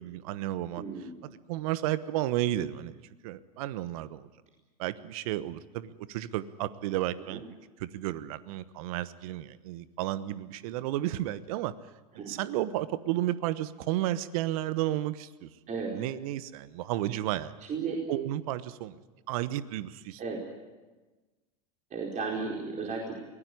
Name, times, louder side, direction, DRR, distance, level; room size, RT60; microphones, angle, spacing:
voice 1, 0.0-0.8 1.2-2.9 3.2-4.3 4.8-7.4 7.8-11.7 12.1-15.5 15.9-17.5 18.1-19.0 19.3-20.2, right 14 dB, 65° right, 15 dB, 1.2 m, -32 dB
voice 2, 0.8-1.1 7.3-7.4 12.2-12.3 15.7-15.9 17.7-18.0 20.2-20.4 21.9-23.1, right 4 dB, 40° right, -1 dB, 4.7 m, -34 dB
23.0 x 17.5 x 9.8 m, 1.2 s
hypercardioid pair, 85°, 20 cm